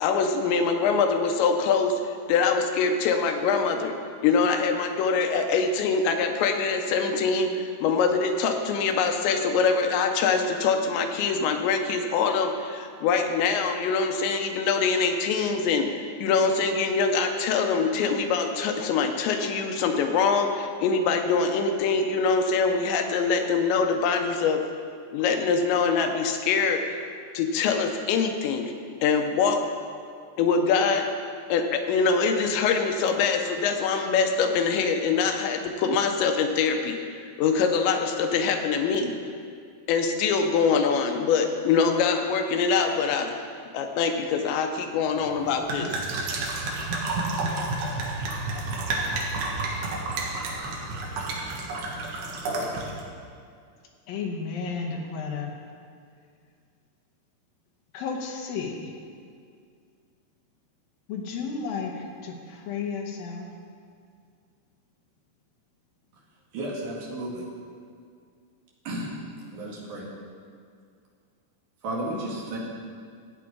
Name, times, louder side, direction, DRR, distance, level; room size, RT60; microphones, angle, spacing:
voice 1, 0.0-2.0 2.3-3.9 4.2-24.6 25.1-26.8 27.3-28.7 29.0-29.6 30.4-31.1 31.5-39.2 39.9-43.3 43.7-46.0 46.7-46.8, left 5 dB, 90° left, 5 dB, 3.0 m, -24 dB
sound 1, 45.1-53.0, right 2 dB, 90° right, 3.9 m, -30 dB
voice 2, 54.1-55.5 57.9-58.9 61.1-63.5, left 5 dB, 70° left, 1 dB, 2.3 m, -32 dB
voice 3, 66.5-67.5 68.8-69.2 69.5-70.1 71.8-72.6, right 1 dB, 50° right, -4 dB, 2.9 m, -33 dB
14.5 x 8.7 x 4.9 m, 2.2 s
omnidirectional pair, 5.3 m